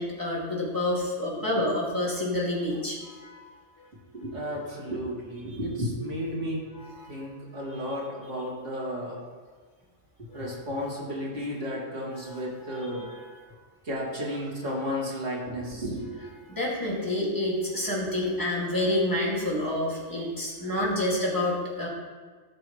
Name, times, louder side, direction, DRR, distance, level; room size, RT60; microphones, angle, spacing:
voice 1, 0.0-3.5 3.8-3.9 5.5-5.6 7.0-7.1 10.3-10.5 12.3-13.2 16.5-21.9, left 1 dB, 15° left, -5 dB, 2.3 m, -29 dB
voice 2, 4.1-6.7 7.1-9.2 10.3-13.1 13.8-16.1, equal, 70° right, -5 dB, 2.7 m, -33 dB
14.5 x 6.0 x 3.2 m, 1.5 s
omnidirectional pair, 1.3 m